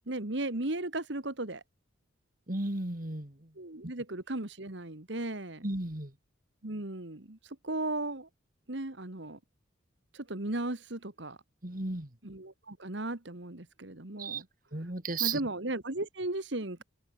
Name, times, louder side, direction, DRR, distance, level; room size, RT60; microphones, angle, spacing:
voice 1, 0.1-1.6 3.6-5.6 6.6-8.3 8.7-9.4 10.1-11.4 12.2-14.4 15.2-16.8, right 2 dB, 60° right, 1.9 m, -36 dB
voice 2, 2.5-3.5 3.8-3.9 5.6-6.1 11.6-12.1 14.2-14.4 14.7-15.4, right 3 dB, 40° right, 2.3 m, -34 dB
open air
head